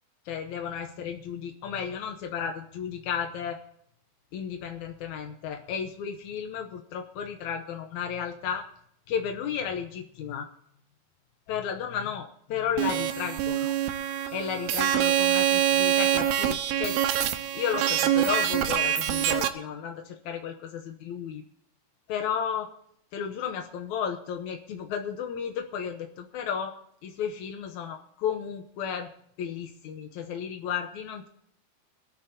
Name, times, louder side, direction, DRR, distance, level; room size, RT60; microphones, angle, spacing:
voice 1, 0.2-3.6 4.3-8.6 9.1-10.5 11.5-13.7 14.3-17.0 17.5-21.4 22.1-22.7 23.1-26.7 27.0-29.1 29.4-31.3, left 8 dB, 85° left, 5 dB, 1.6 m, -33 dB
sound 1, 12.8-19.5, right 11 dB, 80° right, 2.8 m, -25 dB
24.0 x 12.5 x 2.7 m, 0.72 s
omnidirectional pair, 4.7 m